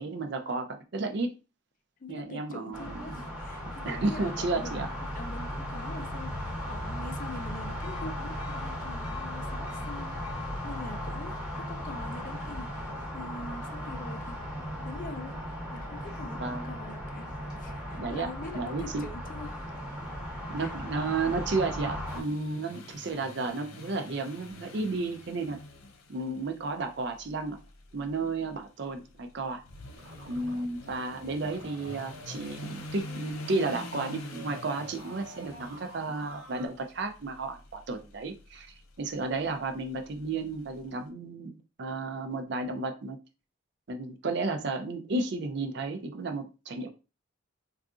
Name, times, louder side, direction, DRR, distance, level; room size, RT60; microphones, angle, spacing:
voice 1, 0.0-1.3 2.1-3.1 3.8-4.9 16.3-16.7 18.0-18.3 18.5-19.0 20.5-25.6 26.1-27.6 27.9-29.6 30.3-43.2 43.9-46.9, right 3 dB, 55° right, 0.4 m, -33 dB
voice 2, 2.0-4.9 5.1-19.7 20.6-20.7 28.0-28.1, left 2 dB, 40° left, 0.4 m, -44 dB
sound 1, 2.7-22.2, equal, 5° right, 0.7 m, -37 dB
sound 2, 22.1-40.9, left 2 dB, 90° left, 0.5 m, -47 dB
sound 3, 30.0-36.7, equal, 75° right, 0.8 m, -49 dB
3.7 x 2.4 x 2.4 m
head